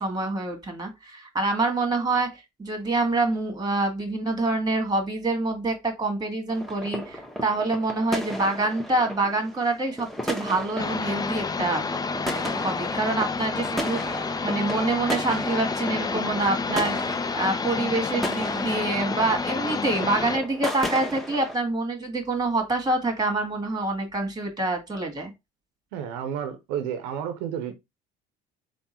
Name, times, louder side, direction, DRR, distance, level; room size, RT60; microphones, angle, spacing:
voice 1, 0.0-11.8 12.3-25.3, right 2 dB, 20° right, 1.7 m, -26 dB
sound 1, 6.5-21.5, equal, ahead, 1.1 m, -35 dB
sound 2, 10.8-20.4, left 4 dB, 20° left, 0.4 m, -29 dB
voice 2, 25.9-27.7, right 9 dB, 90° right, 0.7 m, -31 dB
3.6 x 2.3 x 4.3 m
supercardioid pair, 75°, 20 cm